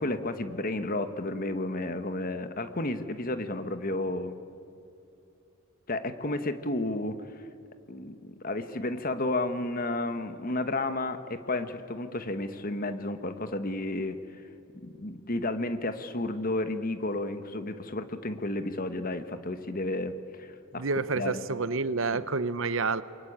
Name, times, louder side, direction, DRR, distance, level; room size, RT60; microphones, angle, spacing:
voice 1, 0.0-4.3 5.9-7.2 7.9-14.2 14.8-20.8 21.1-21.6 22.1-22.2, left 2 dB, 40° left, 10 dB, 1.4 m, -32 dB
voice 2, 20.8-23.0, right 4 dB, 60° right, 15 dB, 0.8 m, -29 dB
28.0 x 23.0 x 8.8 m, 2.6 s
head